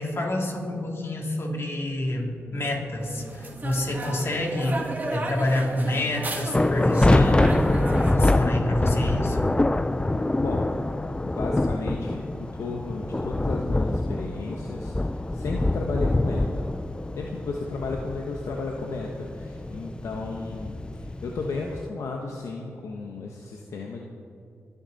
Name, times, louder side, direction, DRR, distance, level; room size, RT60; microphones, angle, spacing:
voice 1, 0.0-9.4, left 1 dB, 55° left, 0 dB, 3.5 m, -28 dB
sound 1, 3.0-8.1, right 2 dB, 35° right, 2.4 m, -34 dB
sound 2, 6.5-21.9, left 2 dB, 20° left, 0.5 m, -25 dB
voice 2, 10.4-10.7 11.2-16.7 17.2-24.0, left 3 dB, 80° left, 0 dB, 1.3 m, -34 dB
25.5 x 10.0 x 4.2 m, 2.4 s
cardioid pair, 50°, 5 cm